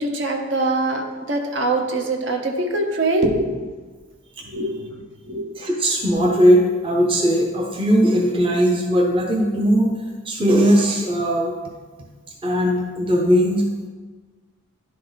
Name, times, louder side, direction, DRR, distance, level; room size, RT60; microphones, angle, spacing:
voice 1, 0.0-3.6 4.5-4.9 5.3-5.5, right 2 dB, 60° right, 3 dB, 0.8 m, -23 dB
voice 2, 5.6-9.9 10.2-11.5 12.4-13.7, equal, 25° right, 0 dB, 0.7 m, -18 dB
10.5 x 3.7 x 3.9 m, 1.4 s
head